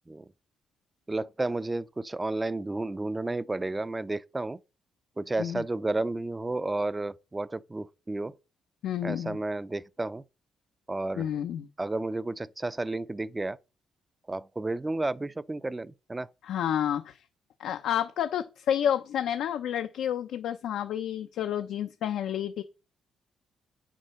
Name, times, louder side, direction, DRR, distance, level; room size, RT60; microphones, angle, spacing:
voice 1, 1.1-4.6 5.2-8.3 9.0-10.2 10.9-11.3 11.8-13.6 14.3-16.3, right 2 dB, 20° right, 0.5 m, -32 dB
voice 2, 8.8-9.4 11.2-11.7 16.4-17.2 17.6-22.6, left 10 dB, 80° left, 0.7 m, -30 dB
8.2 x 6.2 x 5.7 m
cardioid pair, 90°, 0 cm